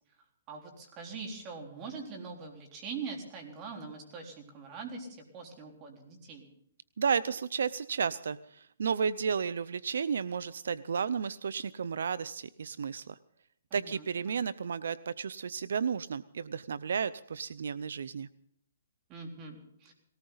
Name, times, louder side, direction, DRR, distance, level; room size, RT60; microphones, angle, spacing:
voice 1, 0.5-6.5 13.7-14.4 19.1-19.9, right 4 dB, 25° right, 2 dB, 4.0 m, -43 dB
voice 2, 7.0-13.2 13.7-18.3, right 6 dB, 75° right, 17 dB, 0.6 m, -33 dB
19.5 x 18.5 x 4.0 m, 0.72 s
hypercardioid pair, 155°, 0 cm